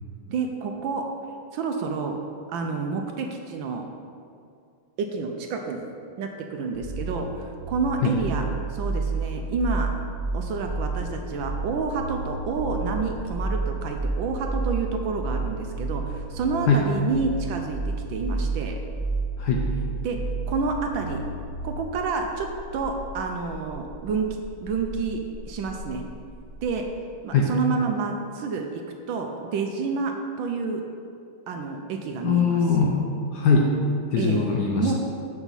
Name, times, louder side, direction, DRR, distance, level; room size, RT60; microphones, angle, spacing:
voice 1, 0.3-1.0 1.5-2.2 2.5-3.8 5.0-5.9 6.2-8.4 8.7-9.9 10.3-18.8 20.0-20.2 20.5-21.2 21.6-24.3 24.6-26.0 26.6-26.9 27.2-28.8 29.1-30.1 30.4-30.8 31.5-32.6 34.2-34.4 34.8-34.9, right 4 dB, 75° right, 3 dB, 1.3 m, -29 dB
sound 1, 6.7-21.7, right 3 dB, 60° right, 0.4 m, -30 dB
sound 2, 19.0-26.9, left 2 dB, 20° right, 2.0 m, -43 dB
voice 2, 32.2-33.8 34.1-34.9, left 4 dB, 70° left, 0 dB, 1.1 m, -21 dB
7.0 x 6.6 x 4.1 m, 2.4 s
omnidirectional pair, 2.4 m